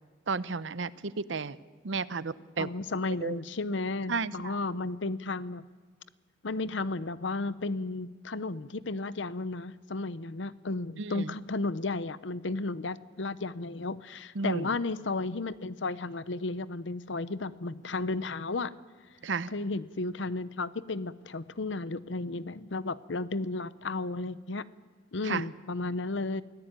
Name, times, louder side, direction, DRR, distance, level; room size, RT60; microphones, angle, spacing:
voice 1, 0.3-1.6 1.8-2.7 3.2-3.4 4.1-4.6 11.0-11.3 14.4-14.7 19.2-19.5 25.2-25.5, right 4 dB, 75° right, 17 dB, 0.7 m, -33 dB
voice 2, 2.6-5.6 6.4-18.8 19.5-24.6 25.1-26.4, left 3 dB, 70° left, 17 dB, 0.8 m, -33 dB
23.5 x 16.5 x 9.1 m, 1.4 s
head